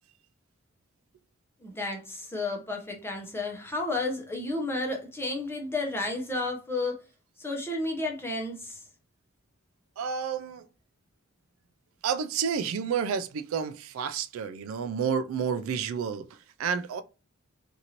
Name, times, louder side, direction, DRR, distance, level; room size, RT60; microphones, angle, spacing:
voice 1, 1.6-7.0 7.4-8.8, left 2 dB, 10° left, 0.7 m, -32 dB
voice 2, 10.0-10.7 12.0-17.0, right 7 dB, 70° right, 0.3 m, -30 dB
2.8 x 2.6 x 2.8 m
head